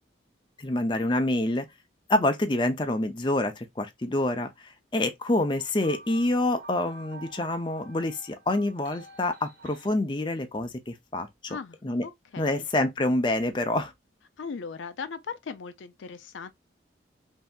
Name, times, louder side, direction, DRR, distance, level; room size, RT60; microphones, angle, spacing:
voice 1, 0.6-1.7 2.1-12.0 12.4-13.9, left 1 dB, 25° left, 0.5 m, -27 dB
sound 1, 5.5-9.9, right 2 dB, 65° right, 1.3 m, -48 dB
voice 2, 12.0-12.7 14.4-16.5, left 5 dB, 90° left, 0.5 m, -38 dB
3.3 x 2.7 x 2.3 m
head